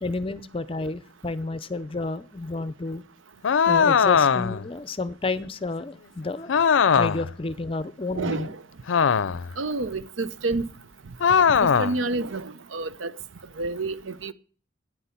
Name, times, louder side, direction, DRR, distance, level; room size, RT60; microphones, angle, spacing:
voice 1, 0.0-3.0 3.7-6.5 7.0-8.5, left 3 dB, 30° left, 0.5 m, -30 dB
sound 1, 3.4-4.7 6.5-7.3 8.9-9.5 11.2-12.0, left 6 dB, 80° left, 0.5 m, -20 dB
voice 2, 8.1-8.6 9.6-10.7 11.4-13.1 13.6-14.3, right 3 dB, 85° right, 0.7 m, -29 dB
9.9 x 9.3 x 8.3 m
head